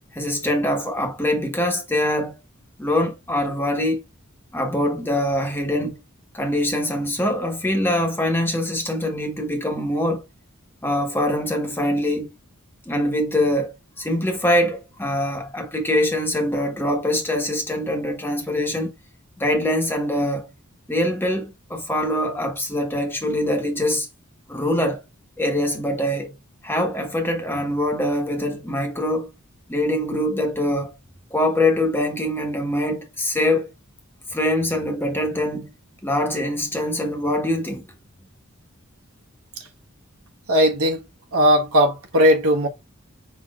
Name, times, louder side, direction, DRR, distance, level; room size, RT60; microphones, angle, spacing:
voice 1, 0.1-2.4 2.8-4.0 4.5-6.0 6.3-10.2 10.8-12.3 12.9-18.9 19.4-20.5 20.9-24.1 24.5-25.0 25.4-26.3 26.6-29.3 29.7-30.9 31.3-33.7 34.3-35.7 36.0-37.9, left 1 dB, 10° left, 1.1 m, -23 dB
voice 2, 40.5-41.0 41.3-42.7, equal, 85° right, 1.3 m, -18 dB
5.7 x 3.9 x 2.4 m
head